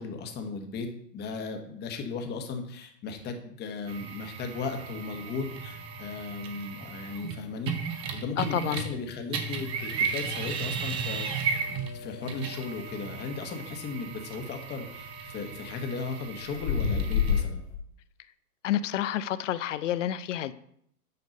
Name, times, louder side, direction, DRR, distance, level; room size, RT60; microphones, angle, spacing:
voice 1, 0.0-7.7 8.1-11.6 11.9-17.7, left 4 dB, 20° left, 5 dB, 1.3 m, -36 dB
sound 1, 3.9-9.0 9.3-17.4, right 6 dB, 10° right, 0.4 m, -35 dB
sound 2, 4.6-17.8, left 6 dB, 75° left, 2.1 m, -37 dB
voice 2, 8.4-8.8 18.6-20.5, left 11 dB, 50° left, 15 dB, 0.7 m, -29 dB
9.5 x 5.2 x 5.2 m, 0.72 s
hypercardioid pair, 120°, 47 cm